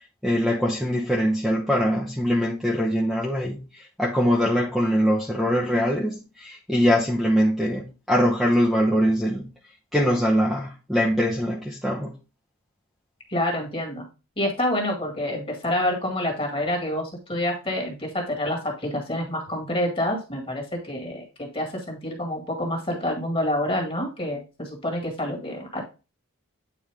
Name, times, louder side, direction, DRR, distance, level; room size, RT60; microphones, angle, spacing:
voice 1, 0.2-9.5 9.9-12.1, equal, ahead, 0.9 m, -23 dB
voice 2, 13.3-14.1 14.4-25.8, left 1 dB, 25° left, 1.9 m, -27 dB
8.7 x 4.4 x 3.5 m
head